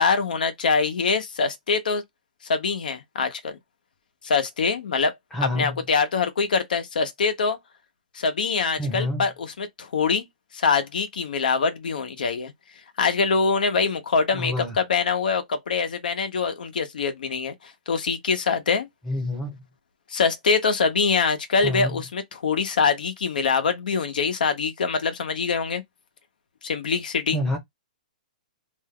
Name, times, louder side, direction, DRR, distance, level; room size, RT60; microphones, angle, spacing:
voice 1, 0.0-2.0 2.4-3.6 4.2-5.1 5.4-7.6 8.1-10.2 10.5-12.5 13.0-18.9 20.1-25.8 26.6-27.4, left 5 dB, 75° left, 0.9 m, -24 dB
voice 2, 5.3-5.8 8.8-9.2 14.3-14.8 19.1-19.6 21.6-21.9 27.3-27.6, left 1 dB, 5° left, 0.7 m, -27 dB
2.6 x 2.3 x 3.5 m
hypercardioid pair, 170°, 5 cm